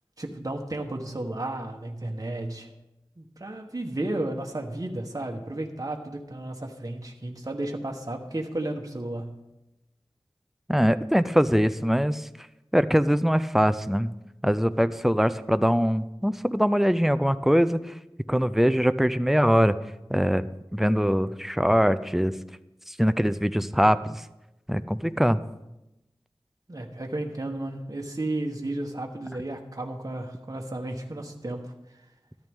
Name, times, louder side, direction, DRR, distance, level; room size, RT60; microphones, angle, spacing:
voice 1, 0.2-2.7 3.2-9.4 26.7-31.7, right 1 dB, 40° right, 1 dB, 1.2 m, -33 dB
voice 2, 10.7-12.3 12.7-14.1 14.4-17.8 18.3-19.8 20.1-20.4 20.7-22.3 22.9-24.2 24.7-25.4, equal, 5° right, 13 dB, 0.5 m, -22 dB
13.5 x 10.5 x 3.6 m, 0.94 s
wide cardioid pair, 50°, 10 cm